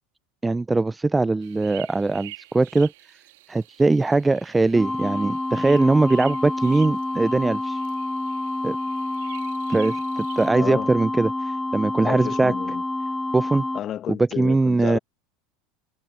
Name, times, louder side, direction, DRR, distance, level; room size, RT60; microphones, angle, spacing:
voice 1, 0.4-2.9 3.5-7.8 8.6-8.8 9.7-12.5 13.3-13.6 14.4-15.0, right 3 dB, 15° right, 0.6 m, -21 dB
sound 1, 1.4-10.5, right 19 dB, 65° right, 2.2 m, -47 dB
sound 2, 4.7-13.8, left 2 dB, 10° left, 2.5 m, -28 dB
voice 2, 10.5-10.9 12.0-12.8 13.7-15.0, left 11 dB, 40° left, 1.7 m, -31 dB
hypercardioid pair, 80°, 0 cm